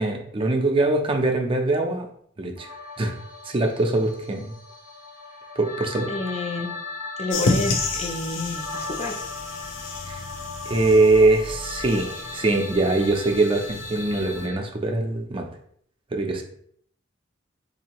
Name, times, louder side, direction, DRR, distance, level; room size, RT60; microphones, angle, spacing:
voice 1, 0.0-2.1 2.4-2.7 3.0-3.1 3.5-4.5 5.6-6.1 10.1-10.2 10.7-15.5 16.1-16.4, right 2 dB, 30° right, 3 dB, 0.5 m, -22 dB
sound 1, 2.6-14.6, left 2 dB, 50° left, 1.1 m, -37 dB
voice 2, 6.1-6.8 7.2-9.2, left 2 dB, 35° left, 1 dB, 0.6 m, -29 dB
sound 2, 7.3-14.5, left 3 dB, 85° left, 0.5 m, -32 dB
4.0 x 2.7 x 2.9 m, 0.65 s
head